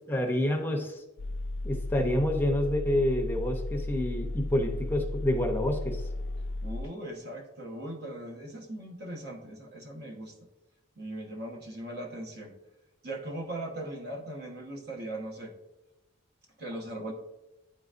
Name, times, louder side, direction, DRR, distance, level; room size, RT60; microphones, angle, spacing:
voice 1, 0.1-1.0 1.6-6.0, left 1 dB, 10° left, 2 dB, 0.6 m, -28 dB
sound 1, 1.2-6.8, left 2 dB, 75° left, 0.4 m, -34 dB
voice 2, 6.6-10.3 11.0-12.5 13.0-15.5 16.6-17.1, right 1 dB, 55° right, 1 dB, 1.1 m, -39 dB
9.9 x 3.9 x 2.5 m, 0.98 s
head